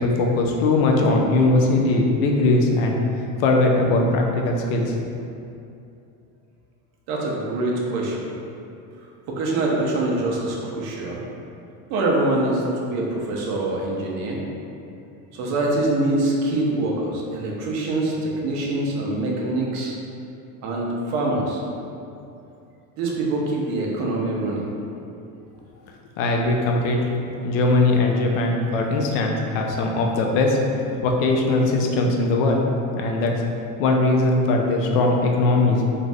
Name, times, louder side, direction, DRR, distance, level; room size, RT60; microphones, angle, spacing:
voice 1, 0.0-3.0 3.4-4.9 26.2-27.2 27.4-30.6 31.0-32.7 33.0-33.3 33.8-35.8, left 2 dB, 80° left, 1 dB, 0.6 m, -20 dB
voice 2, 7.1-8.2 9.3-11.2 11.9-14.4 15.3-19.9 20.6-21.6 23.0-24.6, right 2 dB, 45° right, -2 dB, 0.5 m, -24 dB
2.6 x 2.5 x 3.2 m, 2.7 s
cardioid pair, 160°, 39 cm